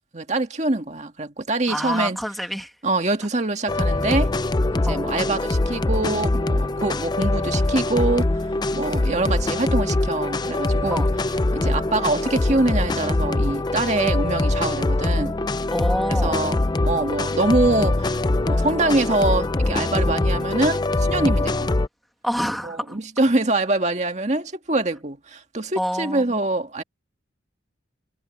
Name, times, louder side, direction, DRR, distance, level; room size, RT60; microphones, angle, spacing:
voice 1, 0.1-2.2 2.8-4.3 4.7-8.4 8.7-11.1 11.5-15.4 16.1-21.8 22.6-26.8, right 2 dB, 35° right, 1.9 m, -24 dB
voice 2, 1.7-2.7 4.9-5.0 10.9-11.1 15.7-16.4 22.2-23.0 25.8-26.4, equal, ahead, 2.1 m, -27 dB
sound 1, 3.7-21.9, left 2 dB, 20° left, 0.4 m, -23 dB
head